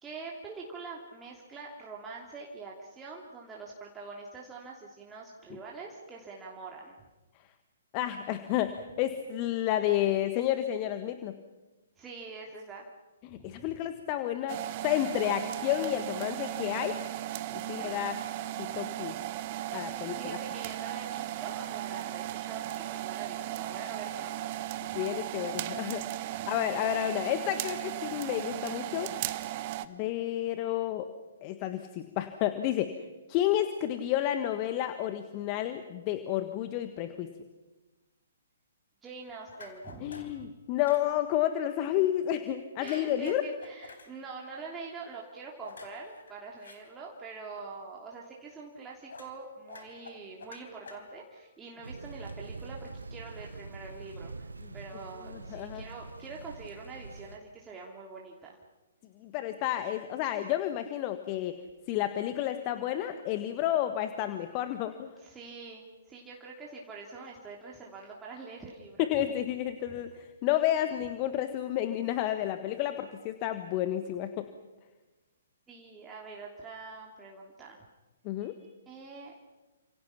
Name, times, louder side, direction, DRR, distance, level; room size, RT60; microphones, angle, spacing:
voice 1, 0.0-7.0 12.0-12.8 13.3-13.8 17.8-17.9 20.0-24.5 39.0-40.5 42.8-54.5 54.7-58.6 65.2-69.1 69.9-70.0 75.7-77.8 78.4-79.3, right 4 dB, 15° right, -3 dB, 3.0 m, -45 dB
voice 2, 7.9-11.3 13.2-17.0 17.7-18.2 18.6-19.2 19.7-20.4 24.9-26.0 26.5-29.1 29.8-31.1 31.4-32.9 33.3-37.3 40.0-43.4 55.3-55.8 59.2-61.6 61.9-65.1 69.0-74.5 78.2-78.6, left 12 dB, 30° left, 9 dB, 1.5 m, -31 dB
sound 1, 14.5-29.9, right 14 dB, 35° right, 1.2 m, -36 dB
sound 2, 39.5-40.4 40.8-41.1 42.8-44.1 45.6-46.8 49.1-49.4 49.7-51.4, left 4 dB, 65° left, 4.3 m, -49 dB
Thunder / Rain, 51.8-57.4, right 3 dB, 75° right, 1.5 m, -44 dB
30.0 x 27.0 x 5.9 m, 1.2 s
figure-of-eight pair, 120°, 0 cm